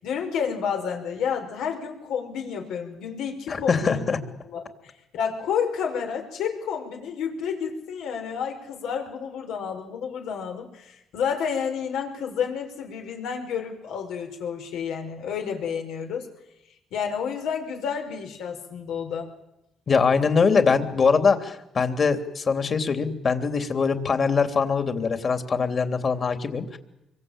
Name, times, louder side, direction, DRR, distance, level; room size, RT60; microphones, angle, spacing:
voice 1, 0.0-4.0 4.4-16.3 16.9-19.3, left 7 dB, 85° left, 4 dB, 5.5 m, -30 dB
voice 2, 3.5-4.2 19.9-26.8, left 5 dB, 45° left, 8 dB, 3.3 m, -22 dB
26.0 x 23.5 x 8.9 m, 0.88 s
cardioid pair, 90°, 0 cm